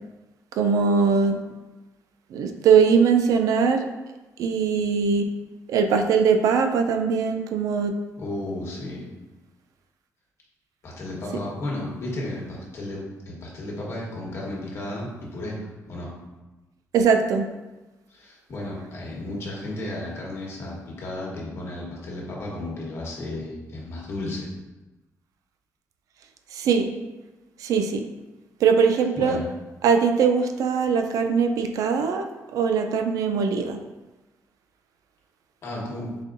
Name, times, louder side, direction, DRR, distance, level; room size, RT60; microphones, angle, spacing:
voice 1, 0.6-1.4 2.3-3.9 4.4-5.3 5.7-7.9 16.9-17.5 26.5-26.9 27.6-28.0 28.6-29.4 29.8-32.2 32.5-33.8, right 6 dB, 85° right, 6 dB, 0.4 m, -21 dB
voice 2, 8.2-9.0 10.8-15.5 15.9-16.1 18.1-24.5 29.2-29.4 35.6-36.1, left 1 dB, 50° left, -4 dB, 1.1 m, -33 dB
4.2 x 3.6 x 2.5 m, 1.1 s
cardioid pair, 145°, 6 cm